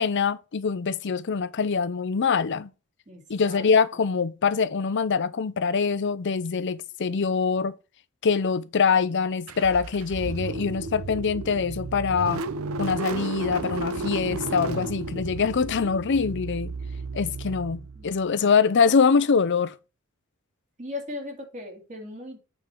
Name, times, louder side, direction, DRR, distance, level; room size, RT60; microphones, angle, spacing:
voice 1, 0.0-2.7 3.3-7.7 8.2-12.4 12.8-16.7 17.1-19.7, left 5 dB, 55° left, 0.5 m, -24 dB
voice 2, 3.1-3.7 18.0-18.1 20.8-22.4, left 2 dB, 35° right, 2.5 m, -38 dB
Car / Engine starting, 9.5-18.2, right 3 dB, 85° right, 0.7 m, -33 dB
8.3 x 4.5 x 4.4 m
head